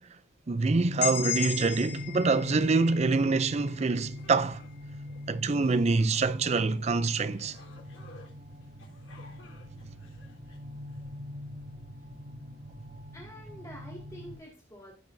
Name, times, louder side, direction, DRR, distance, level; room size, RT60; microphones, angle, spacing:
voice 1, 0.5-4.6 5.3-7.6, right 3 dB, 35° right, 0.4 m, -26 dB
sound 1, 0.8-14.4, left 1 dB, 55° right, 6.5 m, -42 dB
sound 2, 1.0-4.8, left 10 dB, 55° left, 2.2 m, -36 dB
sound 3, 4.0-11.1, left 3 dB, 85° left, 3.7 m, -56 dB
voice 2, 13.1-14.9, equal, 15° left, 2.0 m, -47 dB
16.0 x 6.8 x 2.6 m
head